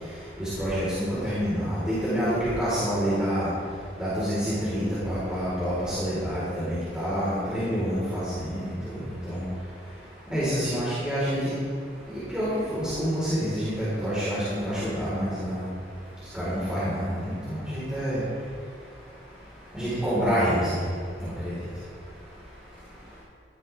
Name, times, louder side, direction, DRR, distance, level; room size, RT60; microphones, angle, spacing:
voice 1, 0.4-3.5 4.0-8.7 9.1-9.4 10.3-11.5 12.1-15.6 16.3-18.2 19.7-20.8 21.2-21.5, equal, 5° right, -12 dB, 4.4 m, -27 dB
17.0 x 14.0 x 3.6 m, 2.3 s
head